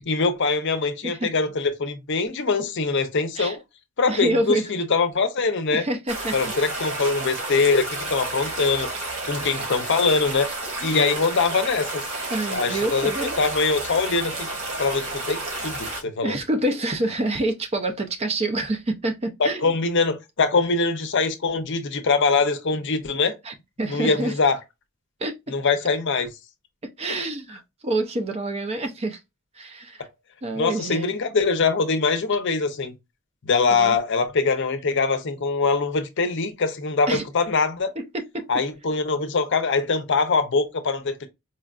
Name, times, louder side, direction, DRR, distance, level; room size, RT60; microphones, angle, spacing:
voice 1, 0.0-3.6 4.0-5.8 6.3-8.9 9.3-10.5 10.8-12.0 12.5-14.5 14.8-16.4 19.4-23.3 23.9-24.6 25.5-26.3 30.6-32.9 33.5-37.9 38.5-41.3, left 4 dB, 55° left, 0.6 m, -23 dB
voice 2, 4.1-4.7 5.7-6.5 8.4-8.5 12.3-13.4 16.2-19.7 23.4-24.4 25.2-25.4 26.8-29.2 29.6-30.1 30.4-31.1 33.7-34.0 37.1-37.2 38.0-38.5, right 1 dB, 30° right, 0.4 m, -27 dB
sound 1, 6.1-16.0, right 2 dB, 65° right, 1.5 m, -31 dB
4.3 x 2.3 x 2.3 m
head